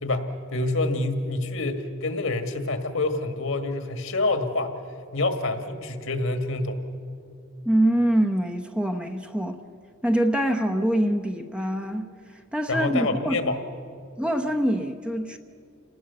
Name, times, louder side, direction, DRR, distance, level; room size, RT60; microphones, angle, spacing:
voice 1, 0.0-4.7 5.1-6.8 12.7-13.6, left 2 dB, 70° left, 1.8 m, -27 dB
voice 2, 7.6-9.6 10.0-12.1 12.5-13.5 14.2-15.4, right 1 dB, 5° right, 0.8 m, -24 dB
28.5 x 19.0 x 6.9 m
head